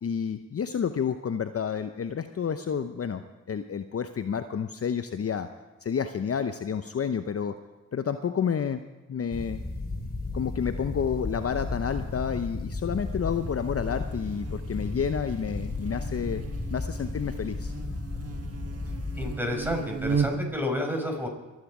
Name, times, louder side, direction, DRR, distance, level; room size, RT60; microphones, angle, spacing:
voice 1, 0.0-3.2 3.5-5.5 5.8-7.5 7.9-8.8 9.1-9.6 10.3-16.4 16.7-17.7, left 7 dB, 45° left, 9 dB, 0.8 m, -30 dB
sound 1, 9.3-19.3, left 2 dB, 30° left, 2.8 m, -34 dB
Buzz, 12.8-20.6, right 5 dB, 45° right, 1.4 m, -36 dB
voice 2, 19.2-21.3, left 1 dB, 5° right, 3 dB, 5.1 m, -30 dB
24.0 x 9.6 x 4.9 m, 1.2 s
supercardioid pair, 45°, 33 cm